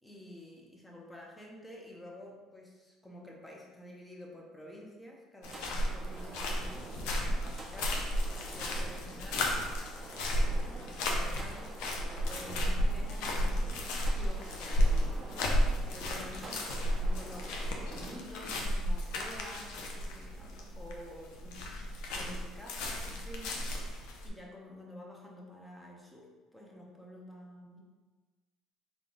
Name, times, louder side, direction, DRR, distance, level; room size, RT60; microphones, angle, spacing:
voice 1, 0.0-9.7 10.3-13.9 14.1-21.8 22.1-23.7 24.2-27.8, left 1 dB, 10° left, -1 dB, 0.8 m, -50 dB
sound 1, 5.4-24.3, equal, 80° left, 0.6 m, -33 dB
sound 2, 5.4-18.2, right 2 dB, 25° right, 0.6 m, -48 dB
3.7 x 2.4 x 3.7 m, 1.3 s
supercardioid pair, 90°, 0 cm